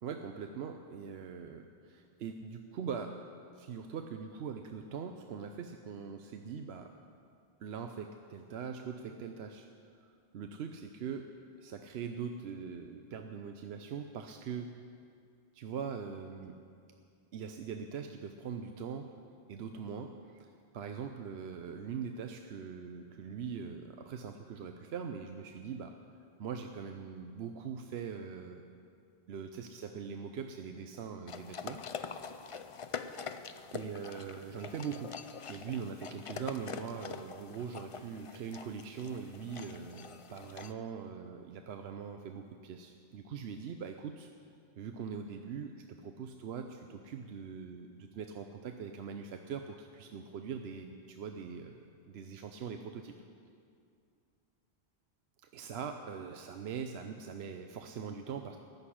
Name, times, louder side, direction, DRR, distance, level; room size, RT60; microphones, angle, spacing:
voice 1, 0.0-3.1 3.5-6.9 7.6-9.7 10.0-11.3 11.6-14.7 15.5-16.6 17.3-19.1 19.5-25.9 26.4-28.6 29.3-31.8 33.7-35.1 35.5-44.3 44.8-53.2 55.5-58.6, right 6 dB, 70° right, 5 dB, 0.9 m, -42 dB
sound 1, 31.3-40.7, left 6 dB, 45° left, 0.4 m, -44 dB
14.5 x 6.7 x 9.8 m, 2.4 s
omnidirectional pair, 1.1 m